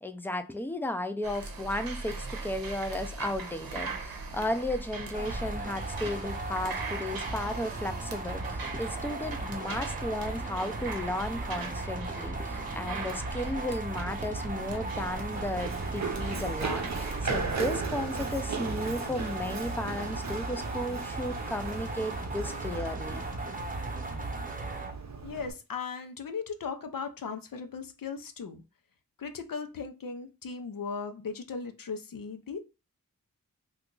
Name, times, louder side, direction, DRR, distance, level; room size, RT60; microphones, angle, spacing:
voice 1, 0.0-23.2, left 1 dB, 5° left, 0.5 m, -34 dB
sound 1, 1.2-17.6, right 3 dB, 85° right, 0.7 m, -40 dB
sound 2, 5.1-24.9, right 2 dB, 25° right, 0.9 m, -37 dB
Run, 14.0-25.5, right 4 dB, 50° right, 0.7 m, -37 dB
voice 2, 25.2-28.6 29.2-32.6, left 5 dB, 70° left, 0.6 m, -37 dB
2.8 x 2.4 x 3.7 m
cardioid pair, 40°, 35 cm